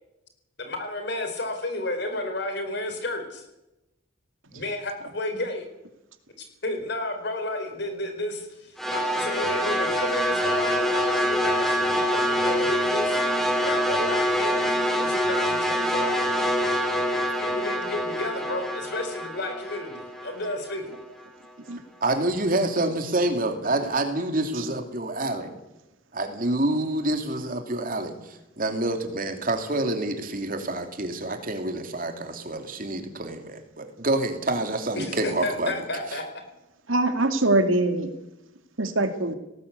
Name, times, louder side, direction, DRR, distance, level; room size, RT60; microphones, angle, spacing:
voice 1, 0.6-3.4 4.5-5.7 6.6-13.2 13.6-14.7 15.0-16.2 17.4-20.9 35.0-36.2, left 2 dB, 55° left, 6 dB, 4.4 m, -32 dB
sound 1, 8.8-21.0, equal, ahead, 3.0 m, -25 dB
voice 2, 22.0-25.5 26.1-35.7, right 2 dB, 45° right, 5 dB, 2.8 m, -27 dB
voice 3, 36.9-38.1 38.8-39.3, right 2 dB, 80° right, 7 dB, 2.5 m, -23 dB
18.5 x 18.0 x 8.4 m, 0.95 s
head